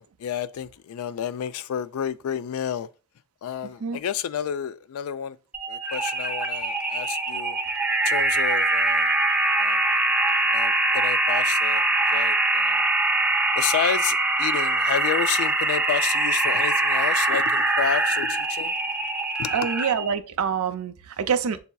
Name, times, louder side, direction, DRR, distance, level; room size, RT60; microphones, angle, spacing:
voice 1, 0.0-2.9 3.4-5.4 5.7-7.6 8.1-9.1 9.6-9.8 10.5-11.8 12.1-12.8 13.6-18.7 19.4-19.5, left 8 dB, 80° left, 0.3 m, -30 dB
sound 1, 5.5-20.1, right 2 dB, 5° right, 0.4 m, -23 dB
voice 2, 19.5-21.6, right 7 dB, 80° right, 0.5 m, -26 dB
7.0 x 2.7 x 2.2 m
head